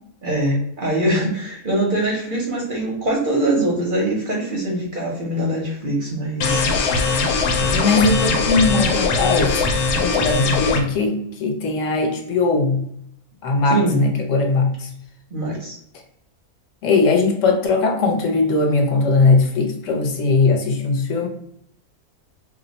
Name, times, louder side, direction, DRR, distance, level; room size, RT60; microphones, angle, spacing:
voice 1, 0.2-6.6 13.7-14.0 15.3-15.8, right 1 dB, 50° right, -3 dB, 0.6 m, -22 dB
sound 1, 6.4-10.8, left 4 dB, 90° left, 1.1 m, -20 dB
voice 2, 7.6-9.6 10.0-12.8 13.4-14.9 16.8-21.3, left 3 dB, 65° left, 2 dB, 0.9 m, -19 dB
2.7 x 2.1 x 3.9 m, 0.72 s
omnidirectional pair, 1.6 m